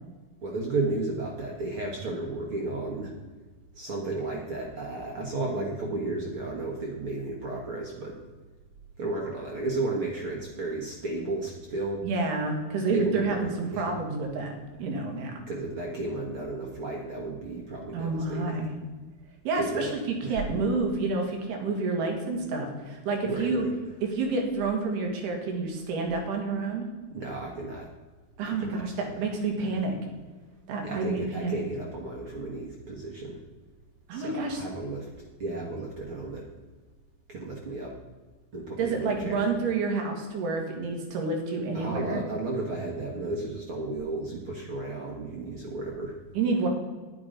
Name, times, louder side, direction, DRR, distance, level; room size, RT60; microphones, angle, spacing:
voice 1, 0.4-3.1 3.7-8.2 9.0-12.1 12.9-13.9 15.5-18.6 19.5-19.9 20.2-20.4 23.2-23.7 27.1-27.9 28.4-29.1 30.8-33.4 34.1-36.5 37.3-38.0 38.5-39.5 41.7-46.2, right 2 dB, 55° right, -1 dB, 1.5 m, -33 dB
voice 2, 12.0-15.3 17.9-18.7 19.5-23.7 24.0-26.9 28.4-30.0 30.7-31.6 34.1-34.6 38.8-42.2 46.4-46.7, right 3 dB, 85° right, 2 dB, 4.0 m, -29 dB
10.5 x 9.6 x 5.1 m, 1.3 s
omnidirectional pair, 4.5 m